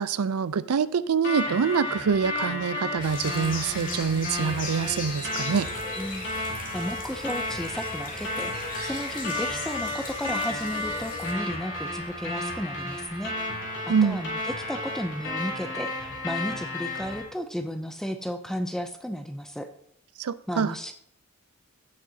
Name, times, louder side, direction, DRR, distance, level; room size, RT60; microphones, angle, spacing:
voice 1, 0.0-5.7 13.9-14.2 20.2-20.7, right 6 dB, 80° right, 16 dB, 0.4 m, -25 dB
sound 1, 1.2-17.2, left 2 dB, 55° left, 2.7 m, -33 dB
sound 2, 3.0-11.3, left 3 dB, 40° left, 2.1 m, -38 dB
voice 2, 6.0-13.3 13.9-19.7 20.5-20.9, equal, ahead, 7 dB, 0.4 m, -34 dB
16.0 x 6.4 x 2.8 m, 0.71 s
head